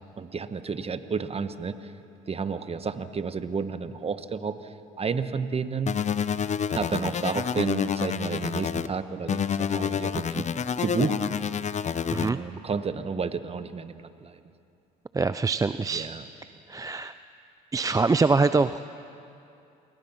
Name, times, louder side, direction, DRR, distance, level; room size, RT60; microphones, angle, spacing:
voice 1, 0.2-1.9 2.3-4.6 5.0-5.9 6.7-10.5 10.8-11.2 12.2-14.3 15.9-16.2, right 5 dB, 35° right, 11 dB, 1.3 m, -31 dB
sound 1, 5.9-8.9 9.3-12.3, left 7 dB, 40° left, 0.8 m, -28 dB
voice 2, 15.1-16.1 16.7-17.1 17.7-18.8, right 4 dB, 20° right, 12 dB, 0.5 m, -24 dB
29.0 x 21.0 x 5.9 m, 2.6 s
supercardioid pair, 75°, 18 cm